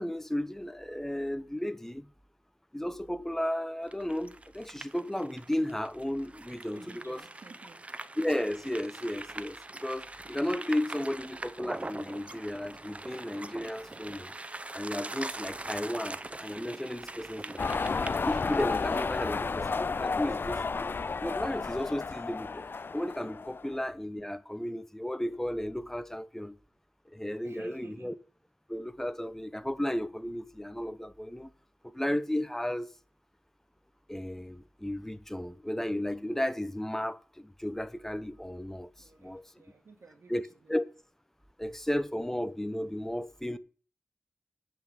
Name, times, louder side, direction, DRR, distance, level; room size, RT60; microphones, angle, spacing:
voice 1, 0.0-2.1 2.7-7.2 8.2-14.3 14.7-17.6 18.2-22.7 22.9-26.6 27.1-28.1 28.7-31.5 31.9-32.9 34.1-38.9 39.2-39.5 40.3-40.4 40.7-40.8 41.6-43.6, left 1 dB, 10° left, 0.7 m, -34 dB
sound 1, 3.9-19.3, right 2 dB, 30° right, 0.6 m, -43 dB
voice 2, 6.7-7.8 27.4-28.1 39.0-40.8, right 3 dB, 80° right, 2.2 m, -54 dB
sound 2, 17.6-23.8, left 4 dB, 50° left, 0.3 m, -32 dB
8.5 x 5.7 x 7.3 m
wide cardioid pair, 70°, 5 cm